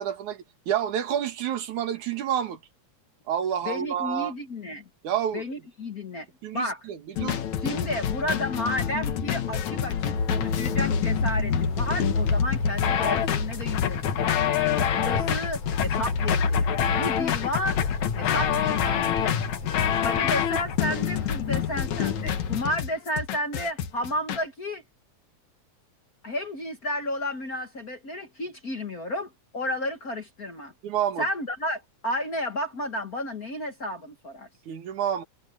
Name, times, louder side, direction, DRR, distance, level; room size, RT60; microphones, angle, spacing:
voice 1, 0.0-2.6 3.3-4.3 5.0-5.4 6.4-7.4 30.8-31.3 34.7-35.2, right 9 dB, 80° right, 3.2 m, -29 dB
voice 2, 3.6-4.8 5.3-6.3 6.5-6.8 7.6-14.5 14.9-16.7 16.9-17.8 18.1-19.3 20.0-24.8 26.2-30.7 31.2-34.5, left 1 dB, 40° left, 1.5 m, -32 dB
sound 1, 7.2-24.4, left 9 dB, 75° left, 2.8 m, -27 dB
sound 2, 10.1-22.6, left 3 dB, 55° left, 6.4 m, -30 dB
omnidirectional pair, 3.3 m